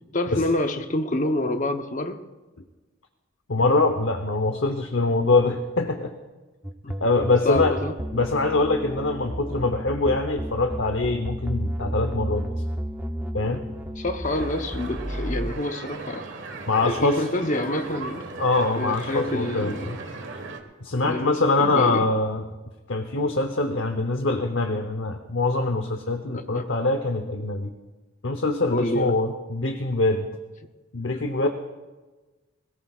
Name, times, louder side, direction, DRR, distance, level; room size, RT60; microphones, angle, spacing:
voice 1, 0.1-2.2 6.8-6.9 7.4-7.9 14.0-16.3 16.7-18.3 18.8-20.0 21.0-22.1 26.3-26.7 28.7-29.2 31.4-31.5, left 1 dB, 40° left, 7 dB, 0.9 m, -27 dB
voice 2, 3.5-6.1 7.0-7.7 8.1-12.5 13.3-13.6 16.7-17.3 18.4-20.0 20.8-22.4 22.9-27.7 28.2-30.3 30.9-31.5, left 2 dB, 65° left, 6 dB, 0.9 m, -23 dB
sound 1, 6.6-15.5, equal, 10° right, 0.6 m, -32 dB
sound 2, 14.2-20.6, right 3 dB, 65° right, 1.4 m, -37 dB
21.5 x 17.5 x 2.4 m, 1.2 s
head